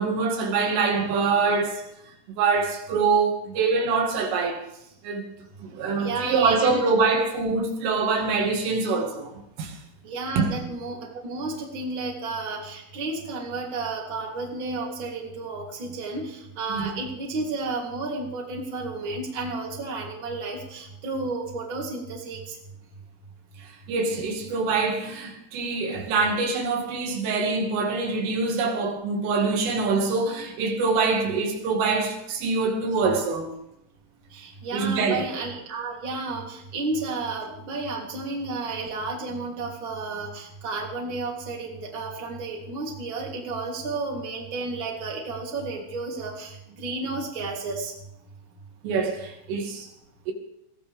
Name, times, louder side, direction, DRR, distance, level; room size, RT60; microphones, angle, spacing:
voice 1, 0.0-1.8 2.4-4.6 5.0-5.2 5.6-9.3 9.6-9.8 10.4-10.5 16.7-16.9 23.6-33.5 34.7-35.3 48.8-49.9 50.3-50.4, right 4 dB, 80° right, 4.5 m, -24 dB
voice 2, 6.0-6.8 10.0-22.5 34.3-47.9, right 3 dB, 30° right, 3.3 m, -32 dB
21.0 x 17.5 x 3.6 m
omnidirectional pair, 5.6 m